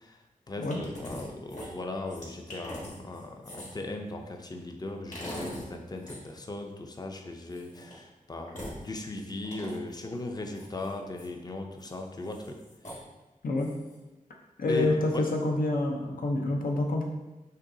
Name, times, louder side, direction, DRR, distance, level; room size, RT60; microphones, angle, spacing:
voice 1, 0.0-12.6 14.7-15.2, left 2 dB, 30° left, 3 dB, 0.5 m, -38 dB
sound 1, 0.7-1.2 1.5-3.9 5.1-5.7 6.0-6.2 7.5-7.9 8.5-8.8 9.4-10.0 10.5-11.3 11.8-11.9 12.2-13.0 13.6-14.0, equal, 55° left, 1.6 m, -42 dB
voice 2, 14.6-17.0, left 2 dB, 75° left, 1 dB, 0.7 m, -27 dB
6.5 x 3.0 x 2.7 m, 1.0 s
wide cardioid pair, 85°, 15 cm